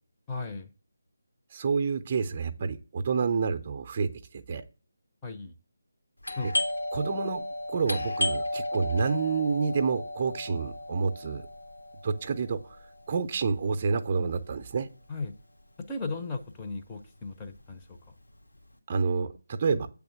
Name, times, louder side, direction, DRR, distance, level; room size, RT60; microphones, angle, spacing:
voice 1, 0.3-0.7 5.2-5.5 6.4-6.5 15.1-15.3 15.9-18.0, left 3 dB, 15° left, 0.6 m, -36 dB
voice 2, 1.5-4.6 6.4-6.5 6.9-11.4 12.0-12.8 13.1-14.9 18.9-19.9, right 5 dB, 30° right, 0.5 m, -29 dB
Doorbell, 6.2-15.6 15.9-16.0 16.6-16.9 17.3-18.6, left 1 dB, 80° left, 1.6 m, -34 dB
8.2 x 3.5 x 6.1 m
figure-of-eight pair, 155°, 0 cm